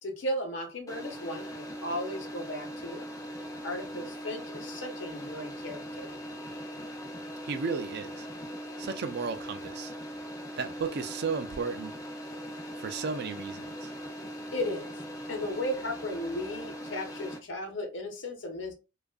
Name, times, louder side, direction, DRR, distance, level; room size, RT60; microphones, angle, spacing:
voice 1, 0.0-3.0 3.6-6.1 14.5-14.9 15.3-18.7, left 1 dB, 70° left, 0.8 m, -35 dB
sound 1, 0.9-17.4, equal, 20° left, 0.4 m, -40 dB
voice 2, 7.4-8.3 8.8-9.9 10.6-11.9 12.8-13.9, right 5 dB, 55° right, 0.3 m, -34 dB
2.5 x 2.4 x 2.2 m
head